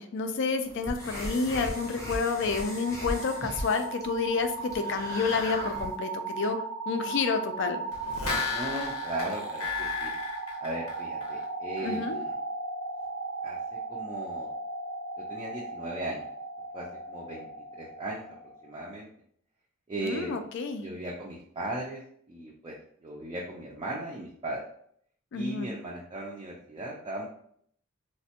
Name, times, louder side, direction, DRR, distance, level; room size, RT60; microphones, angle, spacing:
voice 1, 0.0-6.6 6.9-7.8 11.8-12.2 20.0-20.8 25.3-25.7, left 4 dB, 55° left, 8 dB, 0.3 m, -29 dB
sound 1, 0.6-6.0, equal, 15° left, 0.6 m, -38 dB
sound 2, 0.9-18.7, right 3 dB, 85° right, 0.4 m, -37 dB
sound 3, 7.9-11.4 11.8-11.9, left 5 dB, 90° left, 0.7 m, -34 dB
voice 2, 8.5-10.1 10.6-12.4 13.4-14.5 15.2-16.3 16.7-17.5 17.8-18.2 18.6-19.1 19.9-20.5 20.8-22.0 22.3-24.6 25.3-27.3, right 1 dB, 20° right, -3 dB, 0.3 m, -37 dB
3.2 x 2.1 x 2.8 m, 0.65 s
head